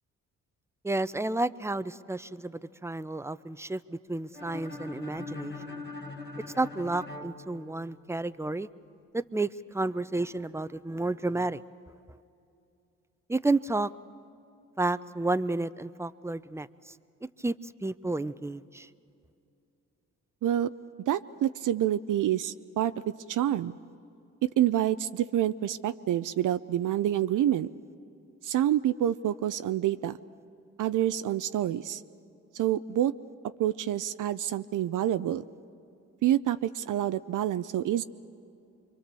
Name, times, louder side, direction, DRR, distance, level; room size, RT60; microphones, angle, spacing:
voice 1, 0.8-5.7 6.6-8.7 9.1-9.5 9.7-11.6 13.3-13.9 14.8-16.9 17.4-18.9, right 2 dB, 10° right, 15 dB, 0.6 m, -31 dB
sound 1, 4.3-8.2, left 3 dB, 30° left, 1.9 m, -42 dB
voice 2, 21.1-22.9 23.3-23.7 24.4-27.7 28.4-30.2 30.8-32.0 32.5-33.1 33.6-35.4 36.2-38.0, right 12 dB, 65° right, 12 dB, 0.6 m, -27 dB
26.0 x 23.5 x 6.8 m, 2.7 s
supercardioid pair, 60°, 34 cm